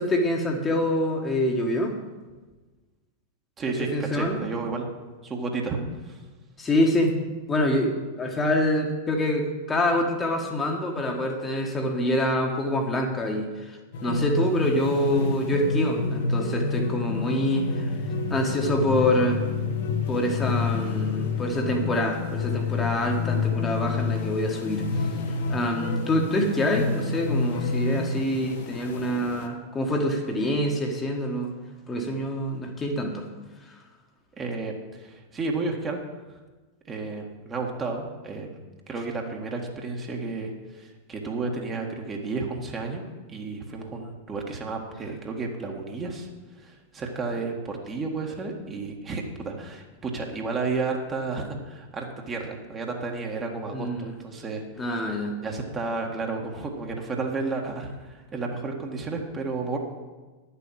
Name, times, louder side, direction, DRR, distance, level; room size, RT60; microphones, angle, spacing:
voice 1, 0.0-1.9 3.9-4.4 6.6-7.1 7.5-18.0 18.3-19.4 20.1-25.1 25.5-31.5 31.9-33.3 33.6-33.8 53.7-54.1 54.8-55.4, left 1 dB, 20° left, 1 dB, 1.5 m, -26 dB
voice 2, 3.6-4.9 5.2-5.8 6.1-6.2 34.4-36.0 36.9-38.6 38.9-43.0 43.3-46.3 46.6-54.6 55.4-59.8, right 3 dB, 20° right, 1 dB, 1.7 m, -32 dB
sound 1, 13.9-29.5, left 4 dB, 55° left, 1.2 m, -28 dB
10.5 x 7.0 x 7.1 m, 1.3 s
figure-of-eight pair, 90°, 0 cm